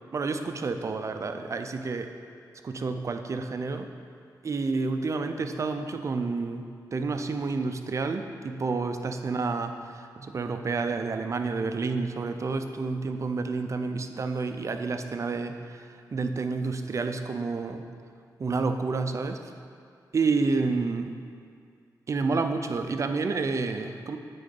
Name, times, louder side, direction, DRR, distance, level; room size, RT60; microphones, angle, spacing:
voice 1, 0.1-2.1 2.6-3.9 4.4-15.8 16.1-17.9 18.4-19.4 20.1-21.1 22.1-24.2, right 4 dB, 45° right, 7 dB, 0.5 m, -29 dB
8.9 x 3.8 x 5.3 m, 2.2 s
wide cardioid pair, 100°, 7 cm